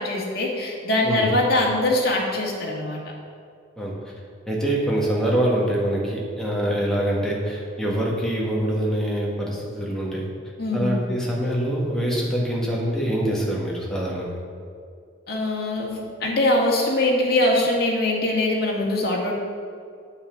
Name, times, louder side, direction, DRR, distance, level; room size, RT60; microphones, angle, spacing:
voice 1, 0.0-3.0 10.6-11.0 15.3-19.4, left 1 dB, 50° left, -2 dB, 2.2 m, -22 dB
voice 2, 3.8-4.1 4.5-10.3 10.7-14.4, right 1 dB, 5° left, -4 dB, 2.0 m, -24 dB
8.7 x 8.6 x 6.0 m, 2.3 s
head